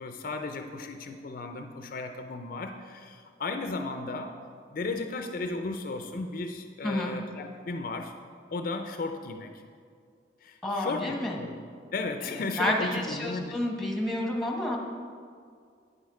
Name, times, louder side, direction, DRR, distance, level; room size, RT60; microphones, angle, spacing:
voice 1, 0.0-4.4 4.7-8.1 8.5-9.5 10.4-11.5 11.9-13.6, left 3 dB, 50° left, 6 dB, 0.4 m, -35 dB
voice 2, 10.6-11.4 12.3-14.8, left 1 dB, 5° left, 0 dB, 1.0 m, -30 dB
8.9 x 6.3 x 4.8 m, 2.2 s
head